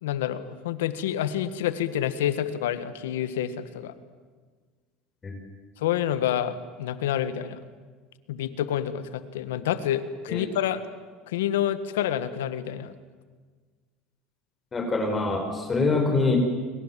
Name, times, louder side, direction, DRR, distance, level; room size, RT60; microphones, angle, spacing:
voice 1, 0.0-3.9 5.8-7.6 8.3-10.8 11.3-12.9, left 10 dB, 85° left, 13 dB, 1.7 m, -28 dB
voice 2, 14.7-16.4, left 3 dB, 25° left, 3 dB, 6.1 m, -25 dB
30.0 x 23.0 x 7.7 m, 1.5 s
supercardioid pair, 95°, 0 cm